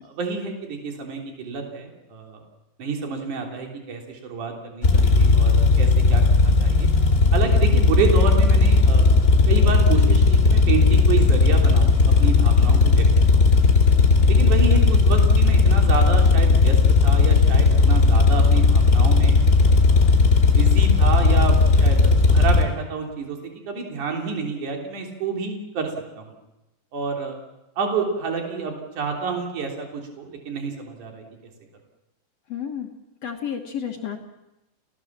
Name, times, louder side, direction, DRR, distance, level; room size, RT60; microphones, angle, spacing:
voice 1, 0.0-2.4 2.8-6.9 7.3-9.1 9.5-13.5 14.3-16.8 17.0-19.4 19.9-23.4 23.7-26.3 26.9-27.4 27.8-31.2, right 5 dB, 50° right, 2 dB, 4.5 m, -29 dB
sound 1, 4.8-22.6, left 4 dB, 25° left, 2.7 m, -16 dB
voice 2, 32.5-32.9 33.2-34.2, left 8 dB, 60° left, 3 dB, 1.7 m, -31 dB
29.5 x 18.0 x 7.4 m, 0.96 s
omnidirectional pair, 4.9 m